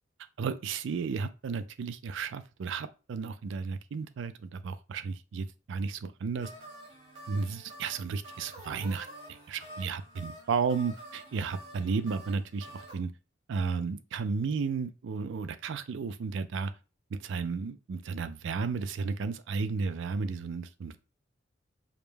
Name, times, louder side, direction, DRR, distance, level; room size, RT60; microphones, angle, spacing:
voice 1, 0.4-6.5 7.3-9.1 9.5-13.1 13.5-16.7 17.2-21.0, right 5 dB, 65° right, 0.4 m, -33 dB
sound 1, 6.4-12.9, right 1 dB, 85° right, 1.8 m, -48 dB
5.0 x 2.0 x 3.3 m
head